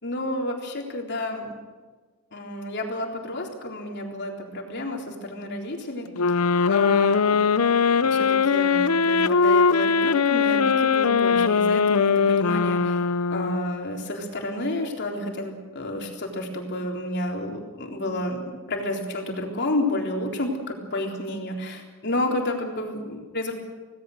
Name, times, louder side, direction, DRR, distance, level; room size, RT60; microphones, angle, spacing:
voice 1, 0.0-1.5 2.3-6.1 6.7-7.4 8.0-13.0 13.3-23.5, left 1 dB, 50° left, 1 dB, 3.9 m, -30 dB
sound 1, 6.2-13.9, left 5 dB, 75° left, 0.7 m, -21 dB
26.5 x 18.0 x 6.6 m, 1.4 s
head